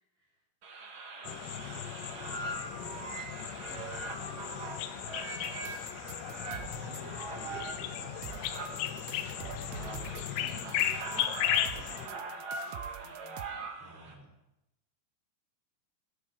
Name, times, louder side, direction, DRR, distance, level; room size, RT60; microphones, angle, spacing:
sound 1, 0.6-14.1, right 3 dB, 55° right, 1.4 m, -42 dB
sound 2, 1.2-12.1, left 11 dB, 85° left, 2.9 m, -36 dB
voice 1, 1.4-2.0 6.1-9.8 13.8-14.3, equal, 5° right, -5 dB, 6.4 m, -53 dB
voice 2, 3.0-5.0 5.2-6.2 9.7-9.9 10.3-13.7, right 1 dB, 40° left, -7 dB, 4.8 m, -55 dB
sound 3, 5.4-7.0 8.2-13.5, right 13 dB, 90° right, 2.9 m, -47 dB
16.5 x 16.5 x 3.6 m, 0.89 s
omnidirectional pair, 5.0 m